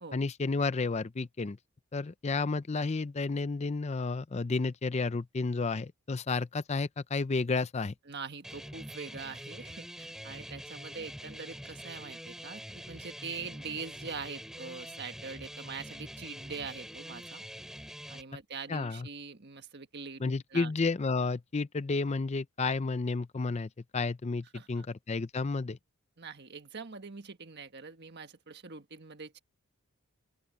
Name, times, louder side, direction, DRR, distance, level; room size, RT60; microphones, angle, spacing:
voice 1, 0.1-1.6 1.9-7.9 18.7-19.1 20.2-25.8, left 3 dB, 30° left, 0.5 m, -31 dB
voice 2, 8.1-17.4 18.1-20.7 24.5-24.9 26.2-29.4, right 5 dB, 50° right, 1.5 m, -43 dB
sound 1, 8.4-18.2, equal, ahead, 2.7 m, -45 dB
open air
head